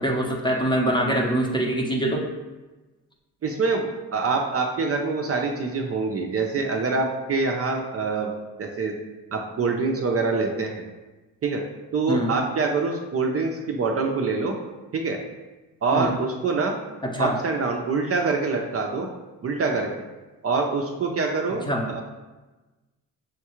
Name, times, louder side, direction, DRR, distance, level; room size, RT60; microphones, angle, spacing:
voice 1, 0.0-2.3 12.1-12.4 15.9-16.2 17.0-17.3 21.7-21.9, right 1 dB, 10° left, 0 dB, 0.7 m, -24 dB
voice 2, 3.4-8.3 8.6-9.0 9.3-10.8 11.4-11.6 11.9-14.5 14.9-15.2 15.8-16.8 17.2-19.1 19.4-20.1 20.4-22.0, right 4 dB, 40° right, 1 dB, 0.5 m, -25 dB
6.3 x 2.3 x 3.0 m, 1.2 s
cardioid pair, 80°, 38 cm